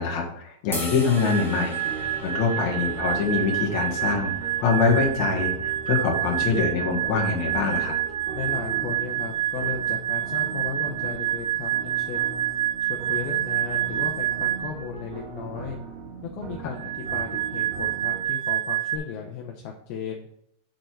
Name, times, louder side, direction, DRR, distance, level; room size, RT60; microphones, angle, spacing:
voice 1, 0.0-7.9, left 5 dB, 55° left, -1 dB, 2.6 m, -24 dB
sound 1, 0.7-6.9, left 1 dB, ahead, 0.7 m, -40 dB
sound 2, 1.2-14.9 16.8-19.0, right 12 dB, 90° right, 2.9 m, -28 dB
sound 3, 1.8-18.2, right 4 dB, 75° right, 1.5 m, -39 dB
voice 2, 8.3-12.3 12.8-15.8 16.2-20.3, left 7 dB, 75° left, 1 dB, 2.5 m, -35 dB
6.7 x 6.4 x 4.5 m, 0.72 s
omnidirectional pair, 4.6 m